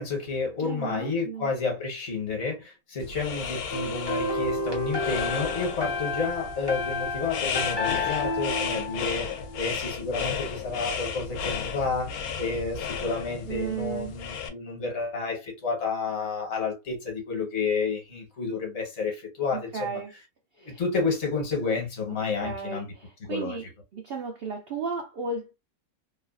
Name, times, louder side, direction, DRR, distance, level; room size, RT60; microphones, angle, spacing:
voice 1, 0.0-9.3 9.6-20.0 20.6-22.9 23.2-23.6, left 4 dB, 50° left, 1.4 m, -30 dB
voice 2, 0.6-1.5 13.5-14.1 19.5-20.1 20.6-20.8 22.4-23.6 23.9-25.5, right 5 dB, 65° right, 0.6 m, -34 dB
sound 1, 3.0-14.5, left 6 dB, 80° left, 1.1 m, -34 dB
sound 2, 3.7-9.7, left 2 dB, 25° left, 0.6 m, -31 dB
3.0 x 2.4 x 2.4 m
omnidirectional pair, 1.5 m